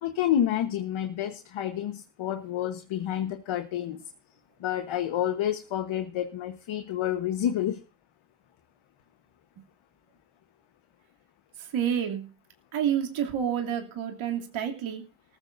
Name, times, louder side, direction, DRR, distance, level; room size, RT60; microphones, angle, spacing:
voice 1, 0.0-4.0 4.6-7.8, left 11 dB, 75° left, 8 dB, 1.3 m, -29 dB
voice 2, 11.7-12.3 12.7-15.0, right 9 dB, 75° right, 3 dB, 3.0 m, -29 dB
19.0 x 14.5 x 2.7 m, 0.33 s
cardioid pair, 100°, 47 cm